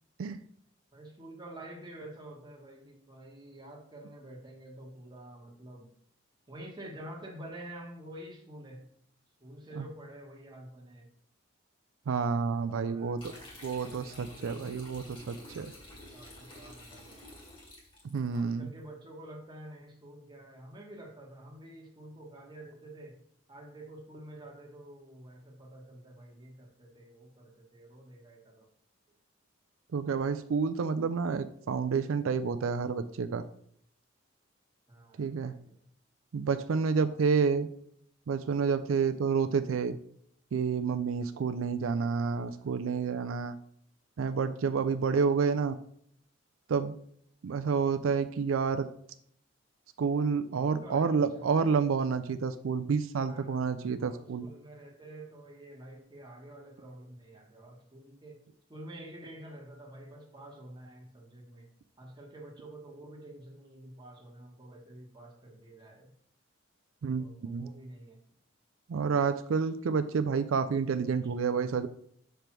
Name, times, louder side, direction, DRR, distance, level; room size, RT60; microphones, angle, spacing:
voice 1, 0.9-5.9 6.5-8.9 9.4-11.1 12.2-14.8 15.3-15.5 15.9-17.2 18.3-23.2 23.5-28.7 34.9-35.8 36.8-37.2 42.0-42.7 50.6-52.0 53.2-58.4 58.7-61.7 62.0-66.1 67.2-68.2 69.6-69.7, right 1 dB, 20° right, 0 dB, 1.3 m, -49 dB
voice 2, 12.1-13.3 13.6-15.7 18.0-18.7 29.9-33.4 35.2-35.5 36.3-37.7 38.3-40.0 40.5-43.5 44.2-45.8 46.7-47.0 47.4-48.9 50.0-54.5 67.0-67.7 68.9-71.9, right 5 dB, 85° right, 10 dB, 0.4 m, -29 dB
sound 1, 13.2-18.4, left 1 dB, 25° left, 1.8 m, -50 dB
5.1 x 4.5 x 6.0 m, 0.66 s
head